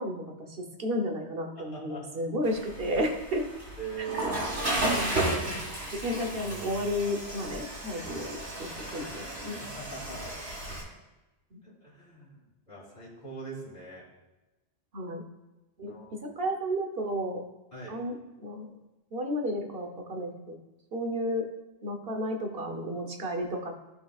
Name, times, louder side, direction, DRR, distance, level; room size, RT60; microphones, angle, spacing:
voice 1, 0.0-3.5 4.0-4.1 4.9-5.5 5.9-9.6 11.5-11.6 14.9-15.2 15.8-17.4 17.9-18.7 19.1-20.6 20.9-21.5 21.8-23.7, equal, 60° right, 4 dB, 1.2 m, -33 dB
voice 2, 1.6-2.0 3.8-5.1 9.6-10.2 11.6-12.4 12.7-14.0 15.9-16.1 17.7-18.0, right 4 dB, 50° left, -5 dB, 2.8 m, -41 dB
Water / Toilet flush, 2.4-10.8, right 1 dB, 85° right, 2.6 m, -34 dB
15.0 x 5.2 x 2.4 m, 1.1 s
omnidirectional pair, 1.1 m